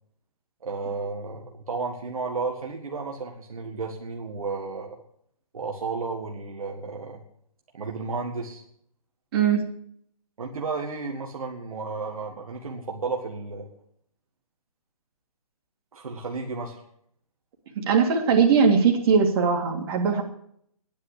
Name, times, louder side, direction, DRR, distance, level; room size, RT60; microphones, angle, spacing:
voice 1, 0.6-5.0 5.5-7.2 7.7-8.6 10.4-13.7 15.9-16.8, right 4 dB, 65° right, 1 dB, 1.9 m, -33 dB
voice 2, 9.3-9.6 17.8-20.2, right 6 dB, 40° right, 1 dB, 2.9 m, -20 dB
10.5 x 9.6 x 8.6 m, 0.68 s
figure-of-eight pair, 140°, 19 cm